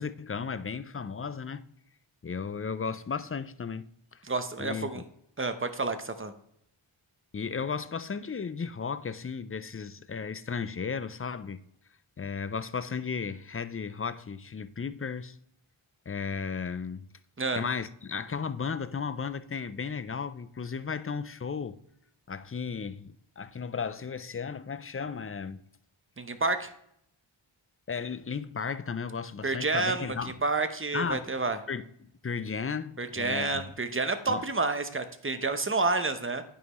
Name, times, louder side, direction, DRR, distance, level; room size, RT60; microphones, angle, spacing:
voice 1, 0.0-1.7 2.2-3.9 4.6-5.0 7.3-11.6 12.2-15.4 16.1-17.1 17.6-21.8 22.3-25.6 27.9-30.4 30.9-31.3 31.7-33.6 34.3-34.4, left 5 dB, 30° left, 0.4 m, -35 dB
voice 2, 4.2-5.0 5.4-6.3 17.4-17.6 26.2-26.7 29.4-31.6 33.0-36.4, right 3 dB, 25° right, 0.8 m, -29 dB
9.3 x 5.5 x 3.0 m
wide cardioid pair, 45°, 50 cm